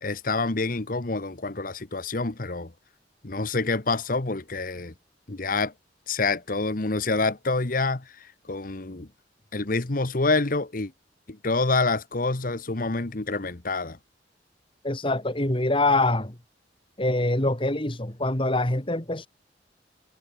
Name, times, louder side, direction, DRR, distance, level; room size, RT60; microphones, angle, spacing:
voice 1, 0.0-2.7 3.2-4.9 5.3-5.7 6.1-9.1 9.5-10.9 11.3-14.0, left 3 dB, 50° left, 1.2 m, -27 dB
voice 2, 14.8-16.4 17.0-19.3, left 2 dB, 30° left, 2.8 m, -24 dB
head